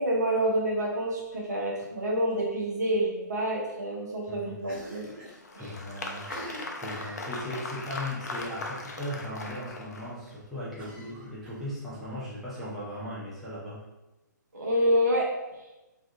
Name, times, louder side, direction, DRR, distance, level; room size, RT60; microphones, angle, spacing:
voice 1, 0.0-5.1 5.5-5.8 14.5-15.7, equal, 60° right, -2 dB, 0.6 m, -28 dB
Cough, 4.6-5.4 5.7-5.8 6.2-7.7 8.4-8.7 9.0-9.1 9.4-9.5 10.8-12.0, right 1 dB, 25° right, 1.3 m, -45 dB
Applause, 5.0-10.3, left 2 dB, 55° left, 0.4 m, -39 dB
voice 2, 5.5-6.3 6.7-13.8, left 1 dB, ahead, -10 dB, 0.5 m, -38 dB
2.5 x 2.3 x 2.5 m, 1.0 s
figure-of-eight pair, 125°, 10 cm